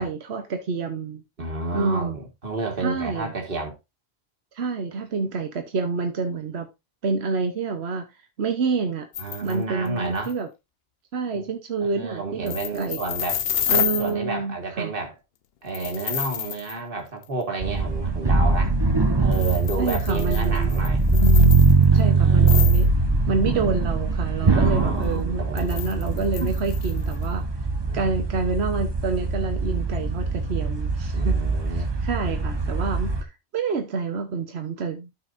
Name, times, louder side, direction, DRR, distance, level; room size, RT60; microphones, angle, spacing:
voice 1, 0.0-1.2 1.7-2.2 2.8-3.3 4.5-6.7 7.0-8.0 8.4-9.1 9.4-10.5 11.1-13.0 13.7-14.9 19.8-20.7 21.1-22.9 23.3-27.4 27.9-31.3 31.7-35.1, right 4 dB, 80° right, 1.3 m, -28 dB
voice 2, 1.4-3.8 9.2-10.3 11.3-11.5 11.8-13.4 13.8-15.1 15.6-18.8 19.2-21.0 21.9-22.7 24.4-25.9 26.4-26.5 27.9-28.1 31.1-31.9, right 3 dB, 60° right, 2.2 m, -31 dB
sound 1, 9.1-9.6 9.9-10.0 10.2-10.3 12.4-14.1 15.7-16.8 17.2-17.3 19.3-22.0 22.4-22.9 25.6-27.3, left 9 dB, 70° left, 0.9 m, -29 dB
sound 2, 17.6-33.2, right 3 dB, 25° right, 0.9 m, -21 dB
13.0 x 5.7 x 2.6 m
omnidirectional pair, 1.1 m